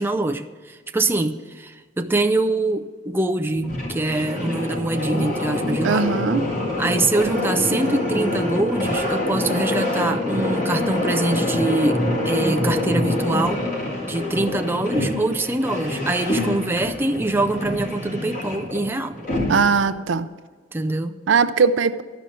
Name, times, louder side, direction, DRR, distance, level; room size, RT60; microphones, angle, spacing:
voice 1, 0.0-6.1 6.8-13.6 14.1-19.2 20.7-21.2, right 2 dB, 10° right, 5 dB, 0.4 m, -24 dB
sound 1, 3.5-19.9, left 1 dB, 45° left, 3.0 m, -25 dB
voice 2, 5.8-6.5 19.5-20.3 21.3-22.0, right 5 dB, 75° right, 12 dB, 0.5 m, -19 dB
12.5 x 5.6 x 6.2 m, 1.5 s
head